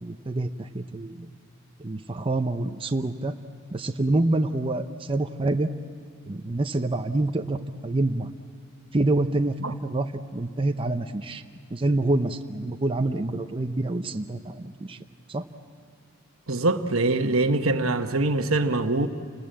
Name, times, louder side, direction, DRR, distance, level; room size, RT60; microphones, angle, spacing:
voice 1, 0.0-1.3 1.8-3.3 3.7-5.7 6.3-8.3 8.9-11.4 11.7-15.0 15.3-15.4, right 2 dB, 25° right, 0.7 m, -27 dB
voice 2, 16.5-19.1, right 2 dB, 80° right, 1.2 m, -23 dB
29.0 x 19.5 x 7.7 m
head